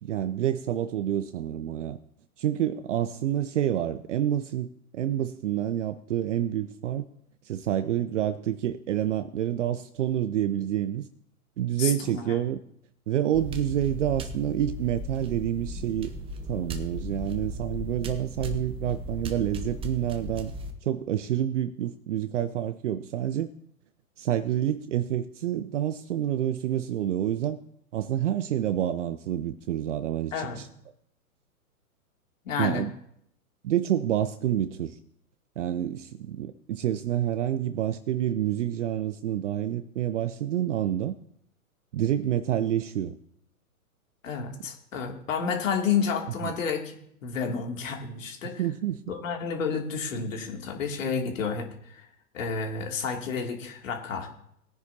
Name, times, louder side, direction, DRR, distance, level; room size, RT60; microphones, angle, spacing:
voice 1, 0.0-2.0 2.4-7.1 7.4-11.1 11.6-12.6 13.1-16.1 16.5-20.5 20.8-23.5 24.2-27.6 27.9-30.7 32.6-32.9 33.6-35.0 35.6-41.2 41.9-43.2 46.4-46.5 48.4-49.0, right 11 dB, 55° right, 12 dB, 0.7 m, -28 dB
voice 2, 11.8-12.4 30.3-30.6 32.4-32.8 44.2-48.6 49.1-52.0 52.3-54.3, left 6 dB, 60° left, 2 dB, 2.9 m, -30 dB
sound 1, 13.3-20.7, equal, 10° right, 0.8 m, -36 dB
20.5 x 10.0 x 2.9 m, 0.70 s
figure-of-eight pair, 115°, 44 cm